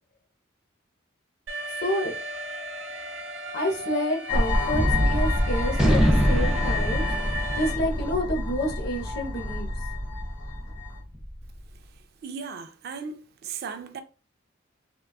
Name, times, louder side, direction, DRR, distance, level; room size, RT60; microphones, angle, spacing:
Alarm, 1.5-7.7, right 2 dB, 65° right, 0.7 m, -36 dB
voice 1, 1.8-2.1 3.5-7.1 7.5-9.7, left 1 dB, 50° left, 0.7 m, -29 dB
sound 1, 4.3-11.0, left 2 dB, 75° left, 1.3 m, -30 dB
Gunshot gunfire, 4.7-11.3, equal, 5° right, 0.6 m, -25 dB
voice 2, 12.2-14.0, right 5 dB, 50° right, 0.3 m, -36 dB
3.7 x 2.3 x 2.3 m
head